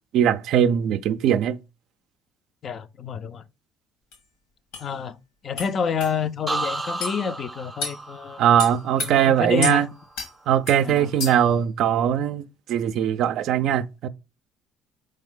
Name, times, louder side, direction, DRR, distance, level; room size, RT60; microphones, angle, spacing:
voice 1, 0.1-1.6 8.4-9.9 10.5-14.1, right 9 dB, 65° right, 0.3 m, -21 dB
voice 2, 2.6-3.4 4.8-5.1 5.4-8.4 9.0-9.9 10.8-11.3, left 6 dB, 50° left, 0.4 m, -29 dB
sound 1, 4.1-4.2 4.7-4.9 5.6-5.7 6.0-6.1 7.0-7.2 7.8-8.0 8.6-9.1 9.6-9.8 10.2-10.3 10.7-10.8 11.2-11.5, left 4 dB, 90° left, 1.5 m, -30 dB
sound 2, 6.5-10.3 10.6-11.1, right 2 dB, 15° right, 0.5 m, -34 dB
4.5 x 3.2 x 3.7 m
supercardioid pair, 75°, 0 cm